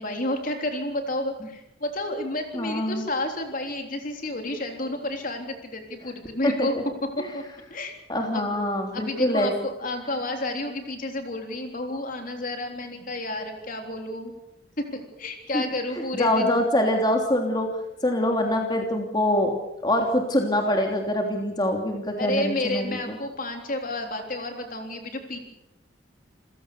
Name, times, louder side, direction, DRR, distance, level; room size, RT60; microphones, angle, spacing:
voice 1, 0.0-6.8 7.2-7.4 7.7-8.0 8.3-8.5 8.9-14.3 14.8-16.5 22.2-25.4, left 1 dB, 45° left, 4 dB, 3.5 m, -31 dB
voice 2, 2.5-3.0 6.4-6.7 7.2-7.3 8.1-9.5 15.5-15.6 16.2-17.7 18.0-19.5 19.8-23.2, left 1 dB, 20° left, 2 dB, 3.0 m, -24 dB
28.0 x 16.5 x 6.8 m, 0.87 s
head